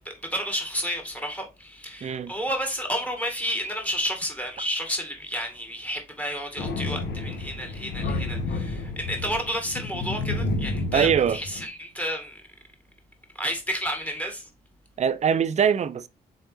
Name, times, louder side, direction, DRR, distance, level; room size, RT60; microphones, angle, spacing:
voice 1, 0.0-12.4 13.4-14.5, equal, 10° left, 1.8 m, -31 dB
voice 2, 2.0-2.3 10.9-11.4 15.0-16.1, right 7 dB, 40° right, 0.4 m, -22 dB
Thunder, 6.6-11.7, left 2 dB, 70° left, 0.9 m, -30 dB
3.9 x 3.3 x 3.1 m
cardioid pair, 60°, 18 cm